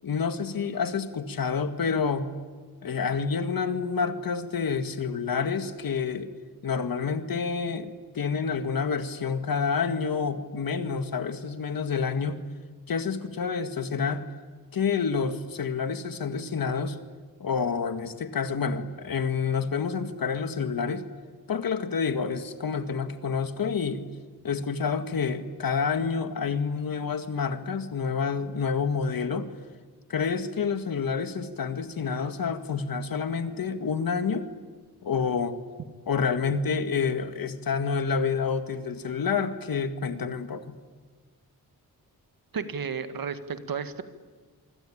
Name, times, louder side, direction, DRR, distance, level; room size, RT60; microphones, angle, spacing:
voice 1, 0.0-2.3 2.8-6.3 6.6-12.4 12.9-14.3 14.7-17.0 17.4-21.0 21.5-24.1 24.4-29.5 30.1-34.5 35.0-35.6 36.1-40.8, left 5 dB, 70° left, 9 dB, 2.0 m, -28 dB
voice 2, 42.5-44.0, right 6 dB, 70° right, 10 dB, 1.9 m, -32 dB
26.0 x 25.5 x 8.8 m, 1.5 s
wide cardioid pair, 145°, 37 cm